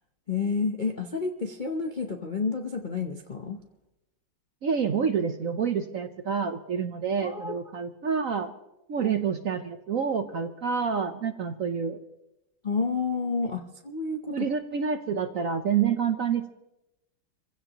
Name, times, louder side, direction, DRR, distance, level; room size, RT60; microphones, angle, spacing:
voice 1, 0.3-3.6 7.2-7.5 8.9-9.1 12.6-14.5, left 4 dB, 45° left, 2 dB, 0.6 m, -30 dB
voice 2, 4.6-8.5 8.9-12.0 13.4-13.5 14.3-16.5, right 6 dB, 60° right, 8 dB, 0.9 m, -28 dB
27.0 x 16.0 x 3.0 m, 0.91 s
omnidirectional pair, 2.1 m